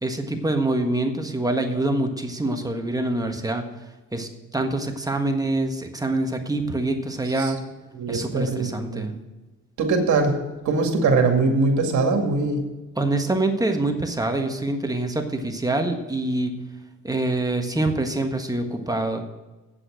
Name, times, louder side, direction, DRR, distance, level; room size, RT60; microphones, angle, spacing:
voice 1, 0.0-3.7 4.1-7.6 8.1-9.1 13.0-16.6 17.0-19.3, right 2 dB, 10° right, 4 dB, 1.4 m, -25 dB
voice 2, 8.0-9.1 9.8-10.3 10.7-12.6, right 3 dB, 70° right, 3 dB, 2.1 m, -22 dB
8.3 x 7.7 x 7.6 m, 1.2 s
cardioid pair, 90°, 30 cm